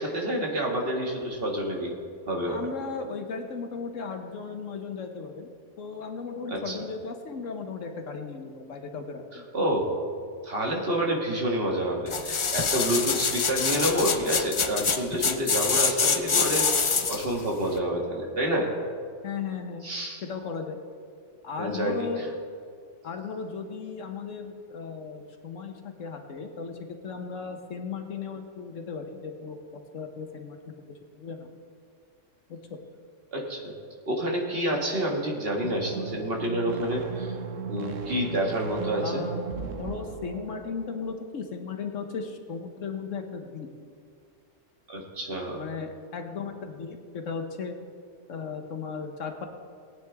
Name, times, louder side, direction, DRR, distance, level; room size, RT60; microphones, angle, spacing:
voice 1, 0.0-1.9 2.3-2.6 6.5-6.8 9.3-9.9 10.4-18.7 19.8-20.2 21.6-22.3 33.3-33.7 34.1-37.4 37.7-39.3 44.9-45.6, right 1 dB, 50° right, 0 dB, 1.9 m, -28 dB
voice 2, 2.4-5.5 5.8-9.5 19.2-19.9 20.2-20.8 21.4-22.2 23.0-30.9 31.2-31.5 32.5-32.8 39.0-39.4 39.7-43.7 45.5-47.8 48.3-49.5, left 5 dB, 85° left, 5 dB, 1.4 m, -36 dB
sound 1, 12.1-17.3 17.8-17.9, left 5 dB, 45° left, 0.4 m, -25 dB
sound 2, 35.5-41.2, right 6 dB, 90° right, 1.2 m, -36 dB
19.0 x 8.9 x 3.5 m, 2.2 s
omnidirectional pair, 1.3 m